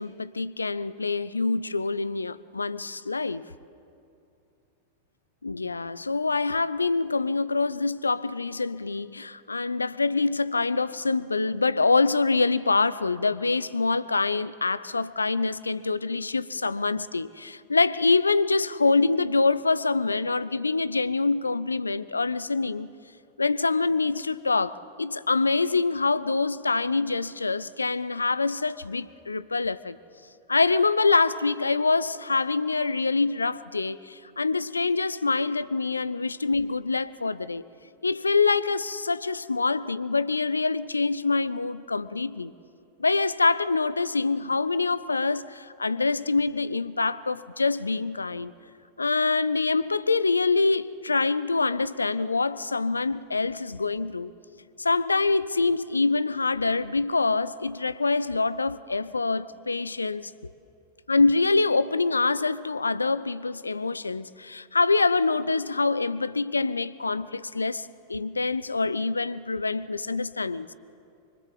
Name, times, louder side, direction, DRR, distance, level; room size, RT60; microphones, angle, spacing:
voice 1, 0.0-3.5 5.4-22.9 23.4-30.0 30.5-37.7 38.0-42.5 43.0-48.5 49.0-54.3 54.8-60.3 61.1-70.7, left 3 dB, 80° left, 0.6 m, -25 dB
25.5 x 24.0 x 7.7 m
figure-of-eight pair, 90°, 0 cm